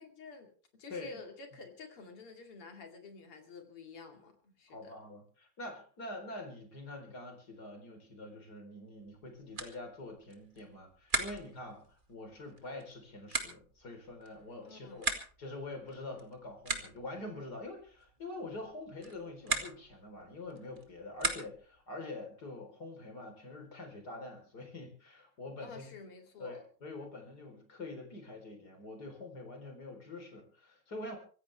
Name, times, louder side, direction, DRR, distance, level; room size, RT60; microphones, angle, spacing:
voice 1, 0.0-5.1 14.6-15.2 25.6-26.6, left 4 dB, 90° left, 4 dB, 3.4 m, -50 dB
voice 2, 4.7-11.8 12.1-15.1 15.4-25.9 26.4-31.2, left 2 dB, 45° left, 4 dB, 4.5 m, -45 dB
sound 1, 9.0-21.8, right 2 dB, 25° right, 2.0 m, -41 dB
25.0 x 15.0 x 3.4 m, 0.42 s
omnidirectional pair, 2.4 m